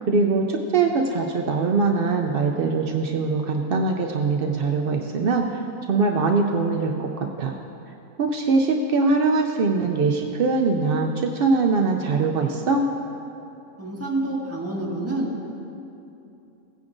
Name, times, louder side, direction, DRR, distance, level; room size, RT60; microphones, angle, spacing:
voice 1, 0.1-5.6 5.9-7.5 8.2-12.8, right 4 dB, 75° right, 2 dB, 0.5 m, -22 dB
voice 2, 13.8-15.3, right 2 dB, 10° right, -5 dB, 1.5 m, -27 dB
16.5 x 9.6 x 2.6 m, 2.8 s
omnidirectional pair, 1.6 m